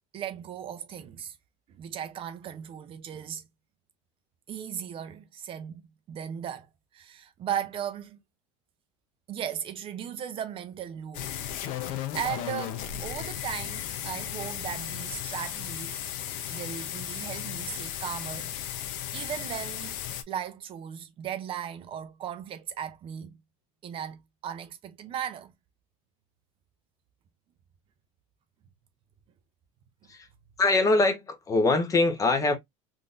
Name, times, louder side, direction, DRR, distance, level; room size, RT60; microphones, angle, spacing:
voice 1, 0.1-1.4 1.8-3.4 4.5-6.7 6.9-8.2 9.3-11.3 11.8-16.0 16.5-18.8 19.1-20.0 20.3-23.3 23.8-25.5, right 9 dB, 35° right, 0.6 m, -37 dB
sound 1, 11.1-20.2, left 11 dB, 55° left, 0.6 m, -35 dB
voice 2, 30.6-32.6, left 2 dB, 20° left, 0.8 m, -23 dB
3.7 x 2.6 x 2.4 m
supercardioid pair, 135°, 16 cm